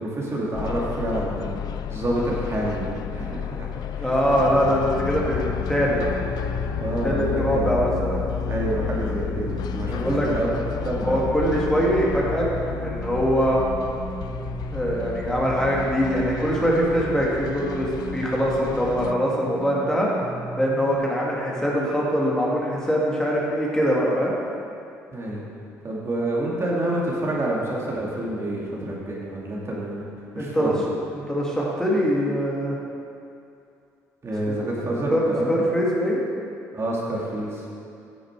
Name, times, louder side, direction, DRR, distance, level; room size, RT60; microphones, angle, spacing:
voice 1, 0.0-1.5 1.9-3.7 3.9-4.1 6.8-7.8 8.5-10.5 10.8-11.2 25.1-25.4 25.8-30.0 30.3-30.7 34.2-35.6 36.7-37.6, right 1 dB, 35° right, -4 dB, 2.3 m, -28 dB
sound 1, 0.5-19.1, left 9 dB, 65° left, 0.4 m, -31 dB
voice 2, 4.0-6.0 7.0-8.2 9.9-10.3 11.0-13.6 14.7-17.9 18.1-20.1 20.6-24.3 30.4-30.7 31.1-32.8 35.1-36.2, equal, 10° left, -4 dB, 2.2 m, -23 dB
sound 2, 5.0-21.0, right 4 dB, 55° right, 0.6 m, -37 dB
9.7 x 6.4 x 4.8 m, 2.5 s
hypercardioid pair, 60°, 7 cm